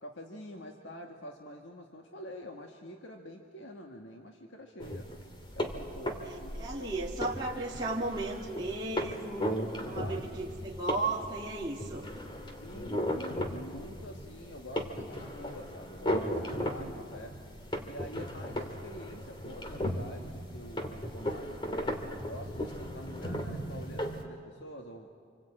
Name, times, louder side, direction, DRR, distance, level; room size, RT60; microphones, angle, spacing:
voice 1, 0.0-5.1 5.5-6.9 9.9-10.4 12.6-17.4 17.8-25.1, left 1 dB, 75° left, 2 dB, 1.7 m, -46 dB
sound 1, 4.8-24.2, equal, 25° left, 1.9 m, -36 dB
voice 2, 6.2-9.5 9.8-12.1, right 2 dB, 20° right, -5 dB, 2.2 m, -35 dB
27.0 x 25.0 x 8.7 m, 2.2 s
head